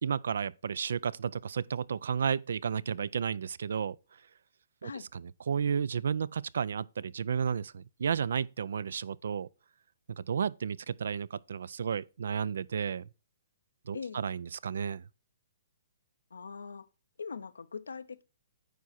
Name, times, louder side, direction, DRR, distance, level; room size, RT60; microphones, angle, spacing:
voice 1, 0.0-4.0 4.8-9.5 10.2-13.0 13.9-15.0, right 7 dB, 70° right, 0.3 m, -32 dB
voice 2, 13.9-14.3 16.3-16.9 17.2-18.2, left 5 dB, 85° left, 0.6 m, -41 dB
9.3 x 4.7 x 4.2 m
hypercardioid pair, 135°, 0 cm